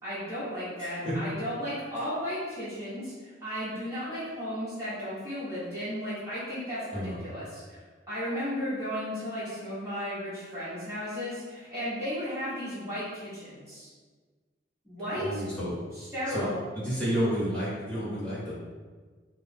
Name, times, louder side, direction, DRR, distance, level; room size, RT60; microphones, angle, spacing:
voice 1, 0.0-7.8 8.1-13.9 14.8-15.4 15.9-16.6, equal, 20° right, -13 dB, 1.1 m, -34 dB
voice 2, 0.8-1.1 6.9-7.2 15.1-15.7 16.3-16.5 16.7-18.5, equal, 5° left, -11 dB, 1.4 m, -31 dB
3.3 x 2.1 x 4.2 m, 1.4 s
head